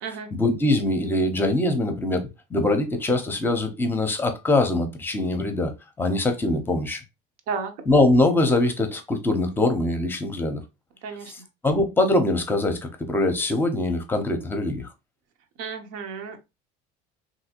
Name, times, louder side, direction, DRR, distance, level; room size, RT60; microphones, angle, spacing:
voice 1, 0.3-5.7 6.0-7.0 7.9-10.6 11.3-14.9, left 2 dB, 10° left, 0.7 m, -23 dB
voice 2, 11.0-11.3 15.6-16.4, right 5 dB, 75° right, 0.8 m, -32 dB
3.3 x 2.7 x 2.8 m
cardioid pair, 140°, 18 cm